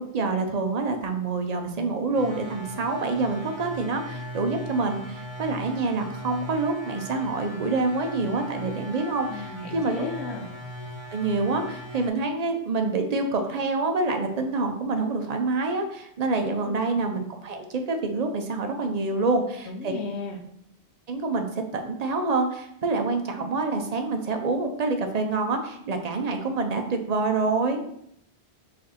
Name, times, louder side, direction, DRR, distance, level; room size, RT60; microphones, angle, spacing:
voice 1, 0.0-10.1 11.1-19.9 21.1-27.8, right 3 dB, 45° right, 5 dB, 0.6 m, -27 dB
sound 1, 2.1-12.1, equal, 25° right, 1.0 m, -39 dB
voice 2, 9.3-10.5 16.7-17.0 19.7-20.4, left 4 dB, 85° left, 2 dB, 0.9 m, -34 dB
5.0 x 2.6 x 4.1 m, 0.72 s
omnidirectional pair, 1.1 m